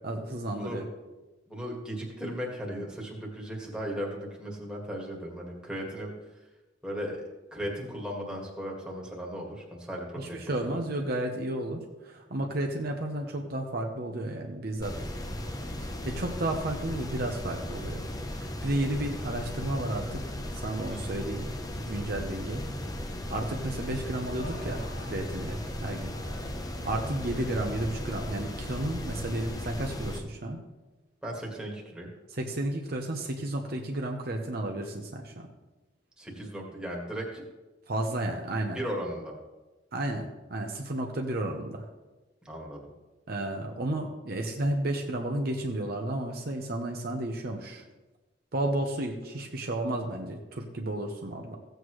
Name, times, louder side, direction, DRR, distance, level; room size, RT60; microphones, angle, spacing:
voice 1, 0.0-0.9 10.2-14.9 15.8-18.1 18.3-20.2 20.5-22.6 23.3-26.1 26.8-30.6 32.3-35.5 37.9-38.8 39.9-41.8 43.3-47.8 48.5-51.6, right 1 dB, 55° right, 2 dB, 0.9 m, -32 dB
voice 2, 1.5-6.1 6.8-10.8 20.9-21.2 31.2-32.1 36.2-37.4 38.7-39.3 42.5-42.9, equal, 5° right, -3 dB, 1.8 m, -36 dB
sound 1, 14.8-30.2, left 1 dB, 20° left, 0.8 m, -36 dB
sound 2, 23.1-28.6, equal, 85° left, 2.6 m, -47 dB
15.5 x 7.9 x 3.2 m, 1.1 s
head